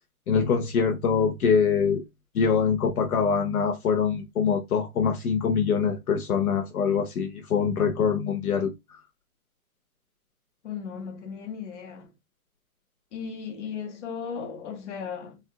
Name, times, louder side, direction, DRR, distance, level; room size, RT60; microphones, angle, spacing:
voice 1, 0.3-2.0 2.3-8.7, left 6 dB, 75° left, 0.9 m, -24 dB
voice 2, 10.6-12.1 13.1-15.4, left 6 dB, 55° left, 1.1 m, -36 dB
3.5 x 2.3 x 2.3 m
hypercardioid pair, 140°, 43 cm